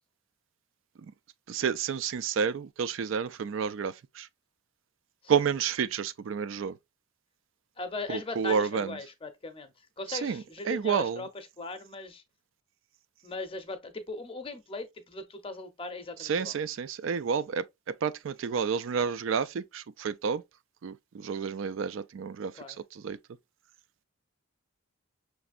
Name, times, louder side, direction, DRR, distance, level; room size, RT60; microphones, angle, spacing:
voice 1, 1.5-4.3 5.3-6.8 8.1-8.9 10.1-11.2 16.2-20.4 20.8-22.6 22.9-23.2, right 6 dB, 65° right, 0.4 m, -30 dB
voice 2, 7.8-12.2 13.2-16.5 22.6-22.8, left 2 dB, 25° left, 0.7 m, -39 dB
5.9 x 3.2 x 2.4 m
head